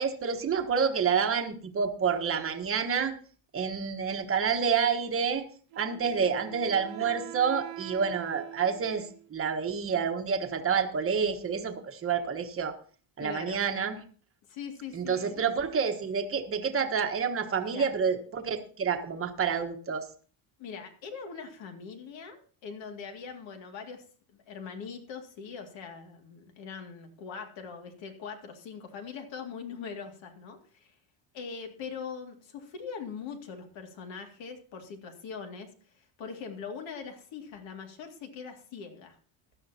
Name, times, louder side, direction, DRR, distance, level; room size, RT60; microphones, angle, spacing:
voice 1, 0.0-3.1 3.5-5.4 5.7-12.7 13.2-14.0 14.9-20.1, right 6 dB, 25° right, 5 dB, 1.3 m, -28 dB
Wind instrument woodwind instrument, 5.7-9.3, right 17 dB, 70° right, 1.2 m, -44 dB
voice 2, 13.2-13.6 14.5-15.4 17.7-17.9 20.6-31.0 31.3-39.2, left 6 dB, 60° left, 4 dB, 2.3 m, -42 dB
16.0 x 11.5 x 2.8 m, 0.42 s
cardioid pair, 155°, 49 cm